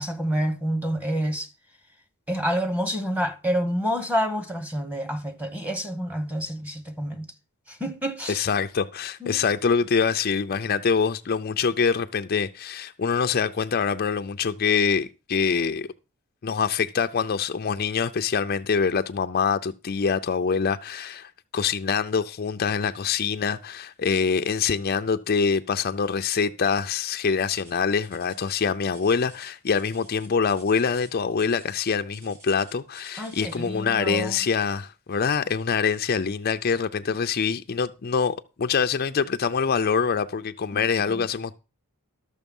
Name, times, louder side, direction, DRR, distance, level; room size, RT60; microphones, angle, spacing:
voice 1, 0.0-1.5 2.3-7.3 7.7-8.4 9.2-9.4 33.2-34.4 40.7-40.8 41.1-41.2, equal, 5° right, 1.1 m, -28 dB
voice 2, 8.3-15.9 16.4-41.5, left 6 dB, 45° left, 0.5 m, -25 dB
sound 1, 27.4-33.8 34.7-35.0 35.5-35.6 36.3-36.4, right 2 dB, 50° right, 6.6 m, -53 dB
12.5 x 6.6 x 5.3 m
head